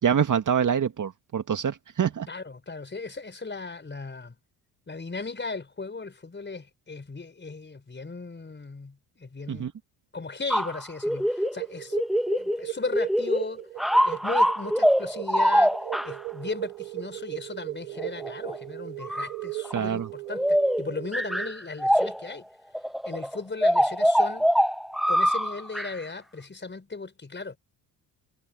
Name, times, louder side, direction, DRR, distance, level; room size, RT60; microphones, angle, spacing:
voice 1, 0.0-2.3 9.5-9.7 19.7-20.1, right 8 dB, 40° right, 2.2 m, -25 dB
voice 2, 2.3-4.4 4.9-9.7 10.1-12.0 12.4-13.6 14.0-15.8 16.0-22.5 23.1-24.5 25.1-27.6, left 3 dB, 25° left, 5.2 m, -36 dB
sound 1, 10.5-11.6 11.9-12.7 12.9-13.5 13.8-16.1 18.0-18.6 19.0-19.3 19.6-19.8 20.3-22.3 22.7-25.9, equal, ahead, 1.6 m, -24 dB
sound 2, 11.3-21.5, right 25 dB, 80° right, 4.3 m, -38 dB
hypercardioid pair, 60°, 47 cm